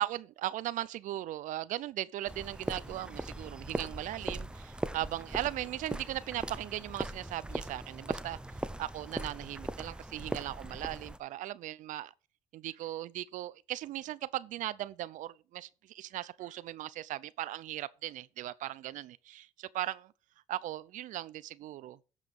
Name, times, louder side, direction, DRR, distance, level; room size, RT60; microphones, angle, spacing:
voice 1, 0.0-8.4 8.8-12.1 12.5-20.1 20.5-22.0, right 14 dB, 70° right, 0.5 m, -38 dB
sound 1, 2.3-11.2, right 1 dB, 5° right, 0.8 m, -40 dB
13.5 x 5.0 x 5.3 m
supercardioid pair, 65°, 14 cm